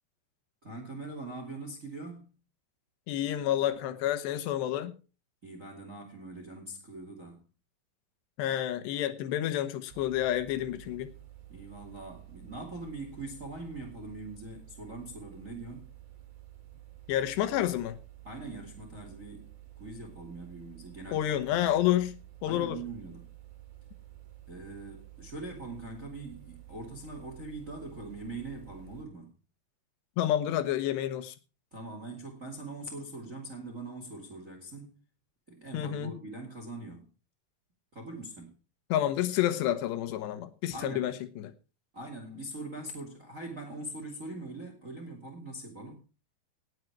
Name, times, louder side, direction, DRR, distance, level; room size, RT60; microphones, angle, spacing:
voice 1, 0.6-2.3 5.4-7.5 11.5-15.9 18.2-19.5 19.8-21.7 22.4-23.3 24.5-29.3 31.7-35.0 35.5-37.1 37.9-38.6 40.7-41.1 41.9-46.0, right 2 dB, 70° right, 0.7 m, -42 dB
voice 2, 3.1-4.9 8.4-11.1 17.1-18.0 21.1-22.1 22.4-22.8 30.2-31.3 35.7-36.1 38.9-41.5, left 12 dB, 70° left, 2.9 m, -29 dB
sound 1, 9.9-29.0, right 14 dB, 50° right, 3.9 m, -51 dB
18.0 x 8.0 x 4.6 m
omnidirectional pair, 5.9 m